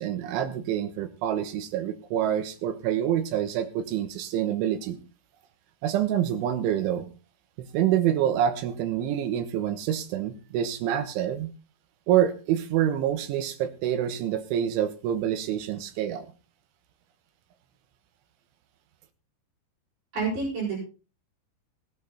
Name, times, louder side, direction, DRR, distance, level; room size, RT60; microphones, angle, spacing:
voice 1, 0.0-5.0 5.8-7.1 7.6-11.5 12.1-16.3, right 10 dB, 80° right, 9 dB, 3.6 m, -27 dB
voice 2, 20.1-20.8, right 4 dB, 40° right, -7 dB, 7.7 m, -28 dB
17.5 x 10.0 x 4.2 m, 0.34 s
omnidirectional pair, 5.7 m